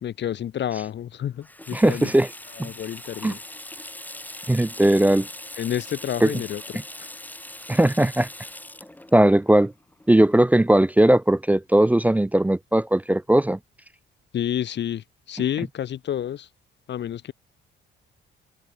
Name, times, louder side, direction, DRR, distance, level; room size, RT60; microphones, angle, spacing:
voice 1, 0.0-2.1 2.6-3.4 5.6-6.6 7.0-7.1 14.3-16.5 16.9-17.3, left 10 dB, 60° left, 1.7 m, -29 dB
Water tap faucet / Sink (filling or washing), 1.4-10.7, left 1 dB, 10° left, 3.0 m, -41 dB
voice 2, 1.7-2.3 2.6-2.7 3.2-3.4 4.5-5.3 6.2-6.3 7.7-8.3 9.1-9.7 10.1-13.6, right 1 dB, 10° right, 0.3 m, -18 dB
cardioid pair, 90°, 20 cm